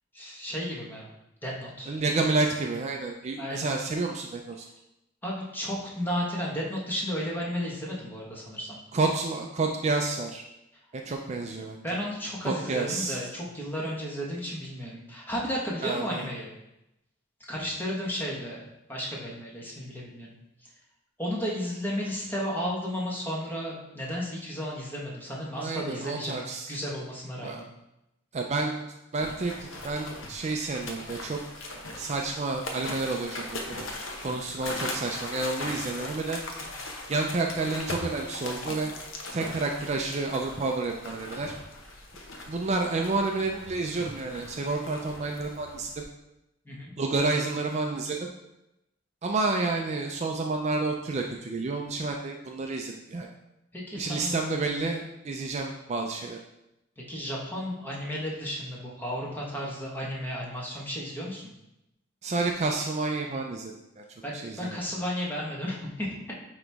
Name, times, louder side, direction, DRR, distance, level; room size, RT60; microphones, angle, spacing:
voice 1, 0.1-1.1 1.4-1.9 3.4-3.7 5.2-8.8 11.8-16.5 17.5-20.3 21.2-26.4 26.7-27.7 34.3-34.4 46.6-46.9 53.7-54.3 57.1-61.5 64.2-66.1, equal, 10° left, -4 dB, 1.3 m, -33 dB
voice 2, 1.9-4.7 8.9-10.4 10.9-12.0 12.4-13.2 15.8-16.3 25.5-26.7 27.4-27.6 28.3-28.8 29.1-31.4 32.0-33.8 34.2-36.4 37.1-38.9 39.3-41.5 42.5-46.0 47.0-48.3 49.2-53.3 54.0-56.4 62.2-64.0 64.3-64.8, right 3 dB, 35° right, 2 dB, 0.4 m, -30 dB
sound 1, 29.2-46.0, left 2 dB, 85° left, 0.9 m, -39 dB
8.9 x 3.0 x 3.5 m, 0.89 s
head